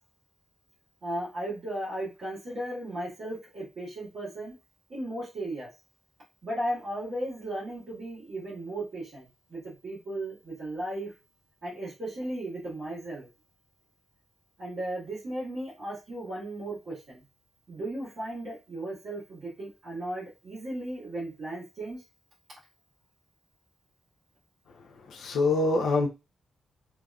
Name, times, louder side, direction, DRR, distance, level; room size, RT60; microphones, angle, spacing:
voice 1, 1.0-4.6 4.9-5.7 6.4-11.1 11.6-13.3 14.6-17.2 17.7-22.0, right 1 dB, 45° right, 1.4 m, -36 dB
voice 2, 25.1-26.1, left 3 dB, 70° left, 0.4 m, -25 dB
3.3 x 2.4 x 2.3 m
wide cardioid pair, 165°, 0 cm